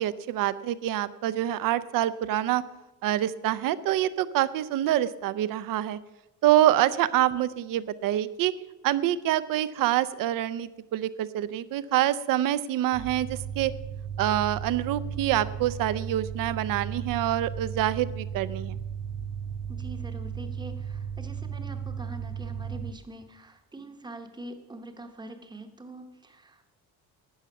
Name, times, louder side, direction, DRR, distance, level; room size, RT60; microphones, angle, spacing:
voice 1, 0.0-2.6 3.0-6.0 6.4-8.5 8.8-13.7 14.2-18.8, right 13 dB, 60° right, 16 dB, 0.6 m, -26 dB
sound 1, 12.9-22.9, right 7 dB, 85° right, 2.9 m, -35 dB
voice 2, 19.7-26.7, right 2 dB, 10° right, 6 dB, 0.9 m, -44 dB
13.0 x 9.2 x 6.0 m, 1.0 s
cardioid pair, 170°, 39 cm